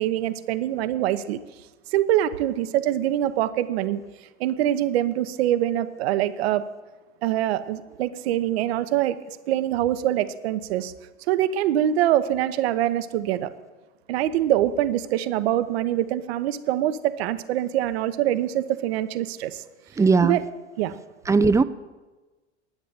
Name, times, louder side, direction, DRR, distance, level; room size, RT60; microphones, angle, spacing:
voice 1, 0.0-1.4 1.9-4.0 4.4-6.6 7.2-9.2 9.5-10.9 11.3-13.5 14.1-19.6 20.2-20.4 20.8-21.0, right 12 dB, 60° right, 12 dB, 0.9 m, -24 dB
voice 2, 20.0-20.4 21.3-21.6, right 4 dB, 10° right, 14 dB, 0.5 m, -18 dB
10.5 x 9.2 x 9.0 m, 1.2 s
figure-of-eight pair, 85°, 34 cm